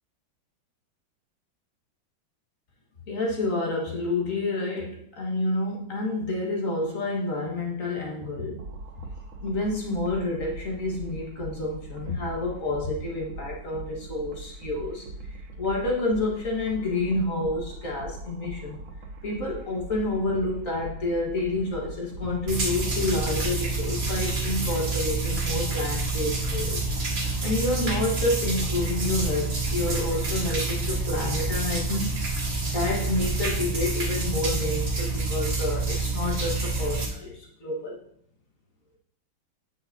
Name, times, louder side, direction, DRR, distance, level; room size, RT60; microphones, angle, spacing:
voice 1, 3.1-8.6 9.0-9.1 9.4-15.1 15.6-18.8 19.2-26.9 27.4-32.2 32.6-38.0, left 2 dB, 45° left, -2 dB, 1.9 m, -29 dB
sound 1, 8.6-27.4, right 2 dB, 80° right, 1.8 m, -41 dB
sound 2, 22.5-37.1, right 3 dB, 35° right, 1.6 m, -28 dB
9.2 x 6.9 x 2.8 m, 0.64 s
omnidirectional pair, 2.1 m